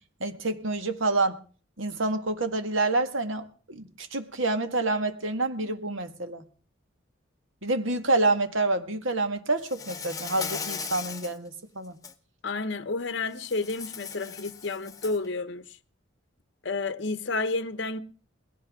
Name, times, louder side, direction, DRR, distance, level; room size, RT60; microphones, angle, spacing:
voice 1, 0.2-1.4 1.8-6.5 7.6-12.0, right 2 dB, 75° right, 1.8 m, -28 dB
Insect, 9.6-11.4 11.8-12.1 13.4-15.3, left 6 dB, 15° left, 0.9 m, -38 dB
voice 2, 12.4-15.8 16.6-18.0, left 3 dB, 60° left, 0.9 m, -31 dB
20.5 x 16.5 x 3.7 m
head